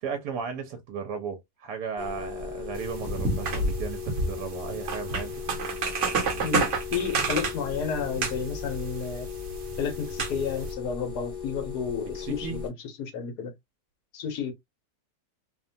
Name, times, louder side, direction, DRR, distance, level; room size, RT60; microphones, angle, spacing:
voice 1, 0.0-5.4 12.0-12.6, right 6 dB, 80° right, 1.2 m, -35 dB
sound 1, 2.0-12.7, left 5 dB, 25° left, 1.1 m, -37 dB
sound 2, 2.8-10.7, right 4 dB, 55° right, 1.0 m, -31 dB
voice 2, 6.1-9.3 9.8-13.5 14.1-14.5, left 6 dB, 80° left, 1.3 m, -32 dB
3.0 x 2.1 x 2.5 m
omnidirectional pair, 1.7 m